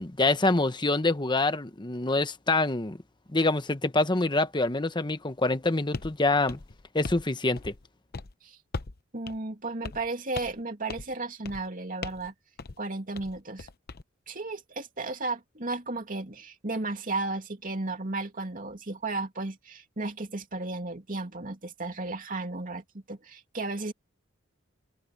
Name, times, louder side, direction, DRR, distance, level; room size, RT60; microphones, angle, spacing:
voice 1, 0.0-3.0 3.3-6.6 6.9-7.7, left 2 dB, 20° left, 1.0 m, -26 dB
sound 1, 5.9-6.1 6.5-7.3 7.6-7.9 8.1-8.3 8.7-9.0 9.3-9.4 9.8-10.1 10.3-10.6 10.9-11.1 11.4-11.7 12.0-12.3 12.6-12.8 13.1-14.0, left 3 dB, 50° left, 0.9 m, -38 dB
voice 2, 9.1-12.3 12.8-13.7 14.3-23.9, right 3 dB, 40° right, 2.8 m, -34 dB
head